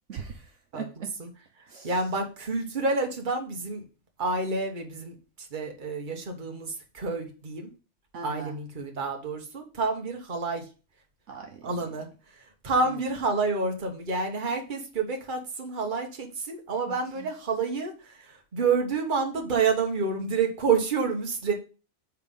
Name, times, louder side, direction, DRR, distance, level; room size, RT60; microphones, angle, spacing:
voice 1, 0.1-1.1 1.7-2.0 8.1-8.6 11.3-11.7 12.8-13.0 16.9-17.3, right 6 dB, 65° right, 2 dB, 1.2 m, -40 dB
voice 2, 1.8-3.8 4.2-5.1 5.5-7.7 8.2-10.6 11.6-12.1 12.6-21.5, right 4 dB, 40° right, 2 dB, 1.4 m, -28 dB
7.5 x 3.7 x 5.4 m, 0.35 s
omnidirectional pair, 1.4 m